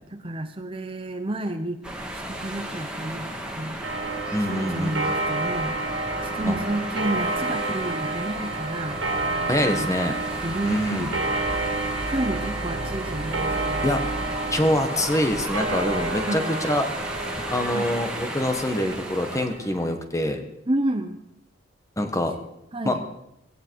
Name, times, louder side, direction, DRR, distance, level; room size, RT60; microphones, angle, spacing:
voice 1, 0.1-1.8 2.1-3.3 3.6-3.8 4.4-5.8 6.2-9.0 9.6-9.9 10.4-11.3 12.0-13.9 16.3-16.6 17.7-17.9 20.7-21.2 22.7-23.0, right 1 dB, 25° right, 7 dB, 0.8 m, -30 dB
sound 1, 1.8-19.5, right 1 dB, 5° right, 2.3 m, -34 dB
Clock, 3.8-19.9, right 2 dB, 60° right, 2.4 m, -30 dB
voice 2, 4.3-4.9 6.5-6.6 9.5-10.2 10.6-11.1 13.8-14.0 14.5-16.9 17.5-20.4 22.0-22.3 22.8-23.0, left 1 dB, 15° left, 6 dB, 1.4 m, -25 dB
sound 2, 8.3-14.4, right 1 dB, 85° right, 1.7 m, -38 dB
18.5 x 16.5 x 4.7 m, 0.84 s
head